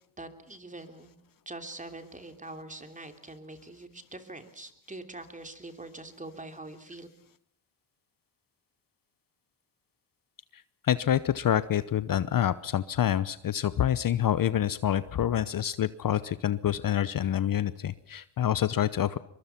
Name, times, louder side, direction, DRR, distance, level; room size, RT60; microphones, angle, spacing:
voice 1, 0.2-1.1 1.4-7.1, right 2 dB, 15° right, 7 dB, 3.1 m, -44 dB
voice 2, 10.5-19.2, left 10 dB, 45° left, 15 dB, 0.9 m, -27 dB
23.0 x 23.0 x 6.0 m, 0.66 s
cardioid pair, 80°, 47 cm